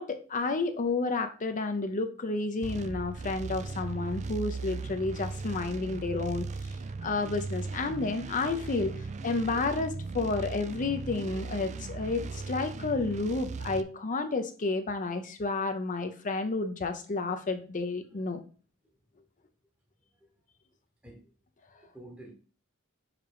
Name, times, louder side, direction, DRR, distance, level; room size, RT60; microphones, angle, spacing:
voice 1, 0.0-6.5 7.0-8.9 9.2-18.4, left 3 dB, 35° left, 7 dB, 0.6 m, -31 dB
sound 1, 2.6-13.8, right 4 dB, 30° right, 0.4 m, -38 dB
voice 2, 21.7-22.3, right 1 dB, 5° right, -1 dB, 1.1 m, -49 dB
5.0 x 4.9 x 4.8 m, 0.39 s
head